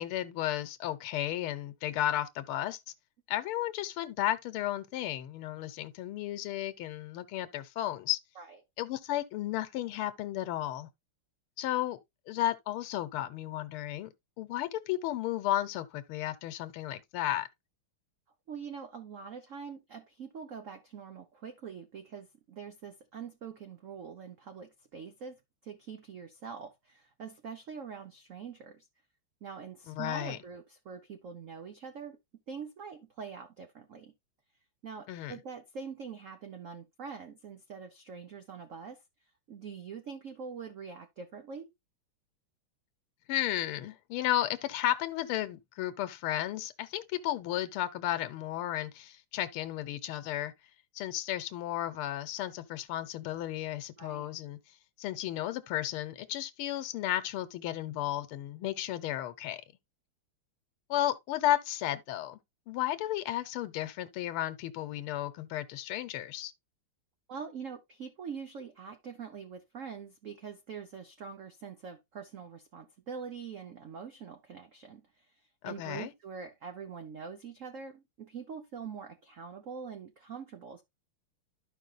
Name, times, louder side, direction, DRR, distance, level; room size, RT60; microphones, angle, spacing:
voice 1, 0.0-2.8 3.3-8.2 8.8-10.9 11.6-12.0 12.3-14.1 14.4-17.5 29.9-30.4 35.1-35.3 43.3-50.5 50.9-54.6 55.0-59.6 60.9-62.4 62.7-66.5 75.6-76.1, left 13 dB, 80° left, 1.6 m, -33 dB
voice 2, 18.5-28.9 29.4-32.2 32.5-34.1 34.8-39.0 39.5-41.7 54.0-54.3 67.3-80.8, right 6 dB, 60° right, 0.8 m, -44 dB
12.5 x 5.3 x 2.4 m
omnidirectional pair, 2.4 m